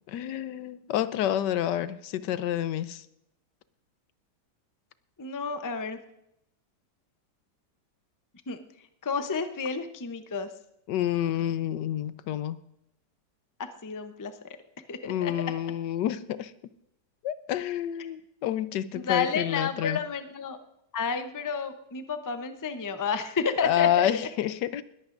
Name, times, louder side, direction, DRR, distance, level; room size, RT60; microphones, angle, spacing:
voice 1, 0.1-3.0 10.9-12.6 15.0-16.5 17.2-20.0 23.6-24.8, left 11 dB, 85° left, 14 dB, 1.3 m, -28 dB
voice 2, 5.2-6.0 8.5-8.6 9.0-10.5 13.6-14.6 14.9-15.3 18.9-20.6 20.9-24.1, left 5 dB, 25° left, 8 dB, 0.4 m, -31 dB
20.5 x 14.5 x 2.6 m, 0.82 s
omnidirectional pair, 1.8 m